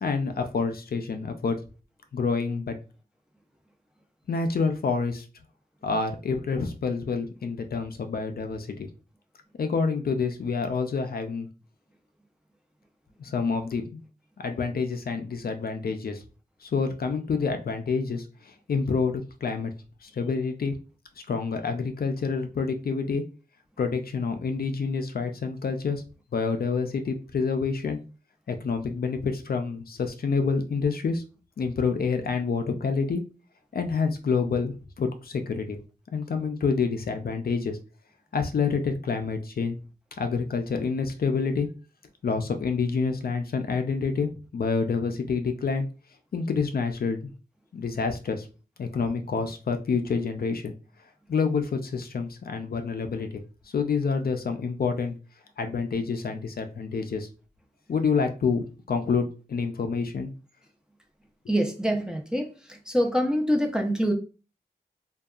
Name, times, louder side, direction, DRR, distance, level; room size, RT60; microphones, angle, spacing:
voice 1, 0.0-1.6 2.1-2.8 4.3-5.3 5.8-8.9 9.6-11.5 13.2-14.0 14.4-16.2 16.6-19.7 20.0-20.7 21.3-23.2 23.8-26.0 26.3-28.0 28.5-31.2 31.6-33.2 33.7-35.8 36.1-37.8 38.3-39.8 40.2-41.7 42.2-45.9 46.3-47.3 47.7-48.5 48.8-50.7 51.3-53.4 53.7-55.1 55.6-57.3 57.9-60.3, left 5 dB, 65° left, 6 dB, 0.4 m, -28 dB
voice 2, 61.5-62.5 62.9-64.1, equal, 5° right, 2 dB, 0.5 m, -25 dB
2.6 x 2.3 x 2.3 m, 0.34 s
wide cardioid pair, 80°, 17 cm